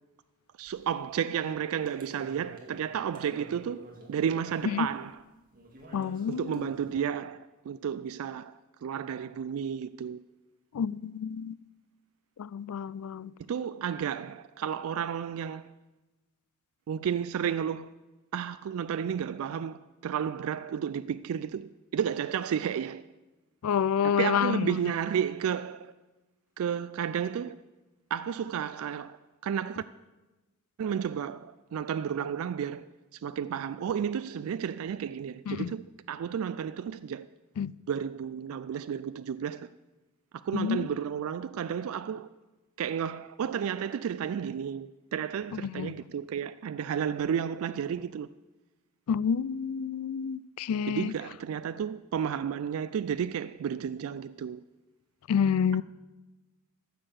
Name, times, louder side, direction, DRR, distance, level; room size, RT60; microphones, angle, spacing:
voice 1, 0.6-5.2 6.3-8.5 8.8-10.2 13.5-15.7 16.9-17.9 18.3-23.0 24.0-25.9 26.6-27.6 28.1-29.2 29.4-29.8 30.8-37.3 37.9-39.7 40.3-42.3 42.8-48.3 50.9-54.6, right 8 dB, 70° right, 0.3 m, -32 dB
sound 1, 0.7-1.2 1.4-6.9, right 1 dB, 40° right, 2.3 m, -51 dB
voice 2, 5.9-6.7 10.7-11.6 12.4-13.3 23.6-24.7 35.5-35.7 37.6-37.7 40.5-40.9 45.5-45.9 49.1-51.1 55.3-55.8, left 7 dB, 80° left, 0.4 m, -29 dB
14.0 x 6.6 x 7.7 m
head